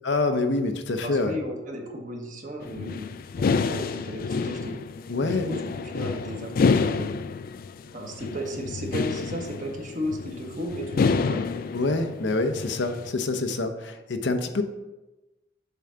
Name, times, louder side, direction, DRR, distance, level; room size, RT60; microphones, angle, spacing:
voice 1, 0.0-1.4 5.1-5.5 11.7-14.6, left 3 dB, 90° left, 7 dB, 0.7 m, -26 dB
voice 2, 1.0-3.1 3.4-4.7 5.2-5.6 5.9-7.2 7.9-11.5, equal, 50° right, 1 dB, 1.3 m, -34 dB
sound 1, 2.6-13.1, left 4 dB, 55° left, 0.3 m, -28 dB
6.9 x 3.7 x 5.7 m, 1.1 s
head